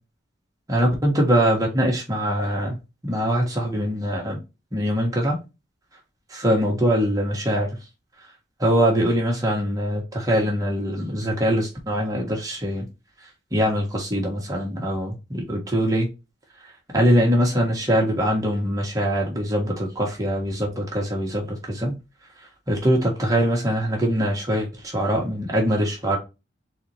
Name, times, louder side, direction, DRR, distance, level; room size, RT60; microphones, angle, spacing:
voice 1, 0.7-2.7 3.0-4.4 4.7-5.4 6.3-7.7 8.6-12.8 13.5-16.1 16.9-21.9 22.7-26.2, equal, 20° right, 1.6 m, -22 dB
4.1 x 4.1 x 3.0 m
head